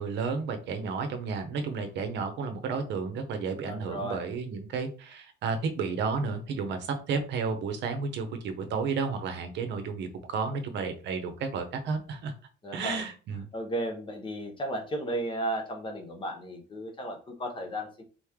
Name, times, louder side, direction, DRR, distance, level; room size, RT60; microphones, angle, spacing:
voice 1, 0.0-12.3 12.7-13.5, right 5 dB, 65° right, 7 dB, 0.8 m, -32 dB
voice 2, 3.7-4.2 12.6-13.0 13.5-18.0, right 1 dB, 25° left, 4 dB, 1.0 m, -34 dB
4.0 x 3.1 x 3.6 m, 0.36 s
cardioid pair, 140°, 20 cm